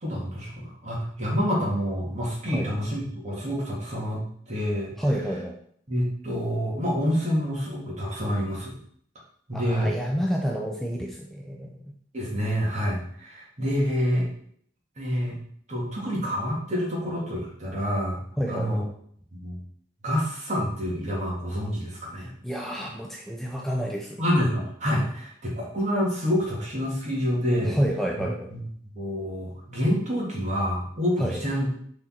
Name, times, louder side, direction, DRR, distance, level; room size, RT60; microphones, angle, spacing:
voice 1, 0.0-4.9 5.9-8.7 9.5-10.0 12.1-14.3 15.0-15.4 15.7-18.2 18.5-18.8 19.3-19.6 20.0-22.3 24.2-27.8 28.2-28.7 29.0-31.7, equal, 40° right, -4 dB, 2.2 m, -27 dB
voice 2, 5.0-5.5 9.5-11.9 18.4-18.8 22.4-24.2 27.7-28.5 31.2-31.4, equal, ahead, -1 dB, 0.6 m, -29 dB
6.2 x 4.3 x 4.4 m, 0.64 s
head